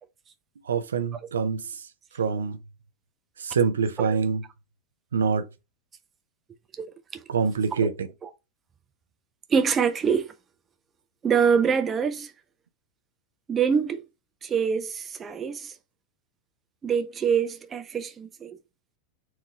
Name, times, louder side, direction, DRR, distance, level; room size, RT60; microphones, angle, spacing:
voice 1, 0.7-1.6 2.2-2.6 3.4-4.4 5.1-5.4 7.3-7.9, right 5 dB, 65° right, 0.6 m, -25 dB
voice 2, 9.5-10.3 11.2-12.3 13.5-14.0 14.4-15.7 16.8-18.6, right 6 dB, 20° right, 0.7 m, -25 dB
4.6 x 3.0 x 3.7 m
figure-of-eight pair, 90°, 0 cm